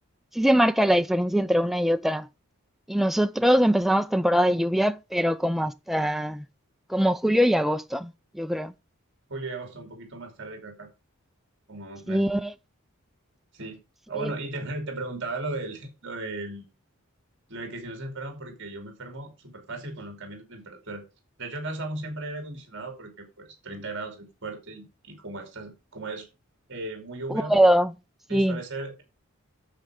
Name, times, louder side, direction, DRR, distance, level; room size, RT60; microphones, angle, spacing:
voice 1, 0.3-2.3 2.9-6.4 6.9-8.7 12.1-12.5 14.2-14.3 27.3-27.9 28.3-28.6, equal, ahead, 0.4 m, -22 dB
voice 2, 9.3-10.9 11.7-12.2 13.5-13.8 14.1-16.7 17.5-21.0 21.4-26.3 26.7-27.5 28.3-29.0, right 2 dB, 55° right, 2.7 m, -36 dB
13.0 x 4.7 x 4.9 m
head